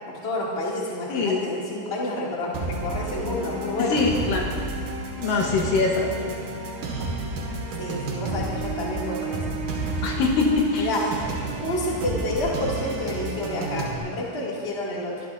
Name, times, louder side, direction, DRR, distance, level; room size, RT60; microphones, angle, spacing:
voice 1, 0.1-4.0 7.8-9.6 10.8-11.0 11.6-15.2, left 1 dB, 20° left, -4 dB, 1.8 m, -29 dB
voice 2, 1.1-1.4 3.9-4.5 5.2-6.1 10.0-10.9, left 3 dB, 70° left, -1 dB, 2.5 m, -23 dB
sound 1, 2.5-14.0, right 2 dB, 65° right, 3.1 m, -31 dB
23.5 x 14.0 x 2.6 m, 2.5 s
omnidirectional pair, 4.3 m